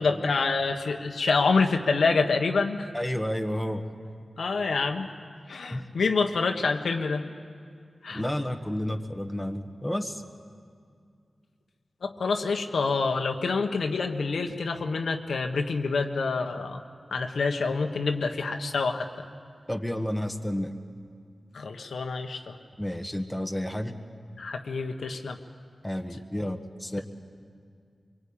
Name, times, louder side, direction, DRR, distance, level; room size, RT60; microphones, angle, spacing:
voice 1, 0.0-2.9 4.4-5.1 5.5-7.3 8.0-8.2 12.0-16.8 17.1-19.1 21.5-22.6 24.4-25.4, left 4 dB, 90° left, 4 dB, 1.5 m, -27 dB
voice 2, 2.9-3.8 5.7-5.9 8.1-10.2 19.7-20.7 22.8-23.9 25.8-27.0, equal, 5° left, 4 dB, 1.5 m, -31 dB
24.0 x 24.0 x 8.8 m, 2.2 s
wide cardioid pair, 90°, 0 cm